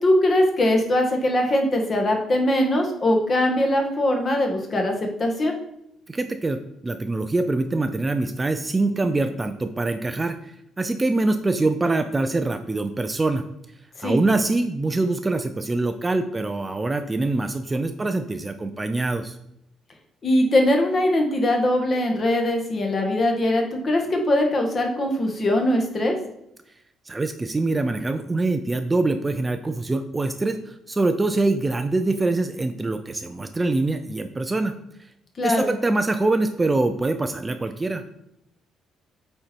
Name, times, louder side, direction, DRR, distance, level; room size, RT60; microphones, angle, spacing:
voice 1, 0.0-5.5 14.0-14.2 20.2-26.1 35.4-35.7, left 1 dB, 35° left, 2 dB, 1.5 m, -21 dB
voice 2, 6.1-13.4 14.0-19.4 27.1-34.7 35.4-38.0, right 2 dB, 15° right, 8 dB, 0.5 m, -24 dB
8.6 x 4.4 x 4.5 m, 0.80 s
cardioid pair, 125°, 0 cm